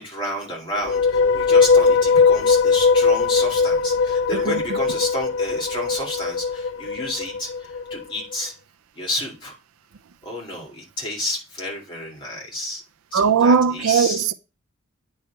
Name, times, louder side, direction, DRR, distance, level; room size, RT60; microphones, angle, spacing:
voice 1, 0.0-8.5 9.0-9.5 10.2-12.8 13.1-14.2, left 1 dB, 25° left, 2.3 m, -30 dB
sound 1, 0.7-8.0, left 5 dB, 60° left, 0.3 m, -19 dB
voice 2, 13.1-14.3, right 6 dB, 85° right, 0.5 m, -18 dB
9.3 x 3.2 x 4.5 m
head